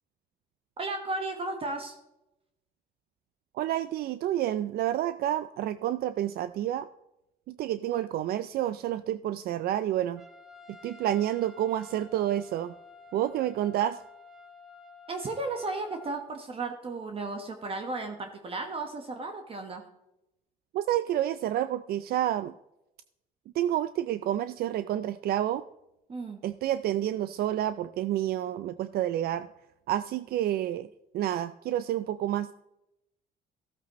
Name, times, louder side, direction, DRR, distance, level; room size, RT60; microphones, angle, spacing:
voice 1, 0.8-1.9 15.1-19.8 26.1-26.4, right 3 dB, 35° right, 5 dB, 1.3 m, -34 dB
voice 2, 3.5-6.9 7.5-10.2 10.8-12.7 13.1-14.0 20.7-22.5 23.5-25.6 26.4-29.5 29.9-30.9 31.1-32.5, right 12 dB, 65° right, 13 dB, 0.4 m, -29 dB
Trumpet, 10.2-16.2, left 4 dB, ahead, 1.3 m, -51 dB
15.0 x 8.3 x 3.1 m, 0.87 s
cardioid pair, 110°, 17 cm